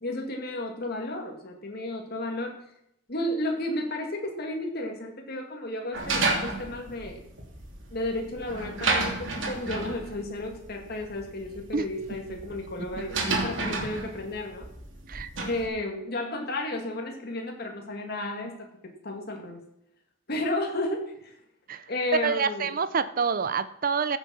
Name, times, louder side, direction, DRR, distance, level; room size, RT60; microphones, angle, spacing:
voice 1, 0.0-2.6 3.1-7.2 7.9-14.7 15.4-18.7 19.0-19.6 20.3-21.4 21.9-22.7, left 1 dB, 55° left, 2 dB, 2.3 m, -33 dB
sound 1, 5.9-15.7, right 3 dB, 75° right, 2.9 m, -32 dB
voice 2, 22.2-24.2, right 5 dB, 50° right, 14 dB, 0.6 m, -27 dB
15.0 x 7.3 x 5.7 m, 0.77 s
head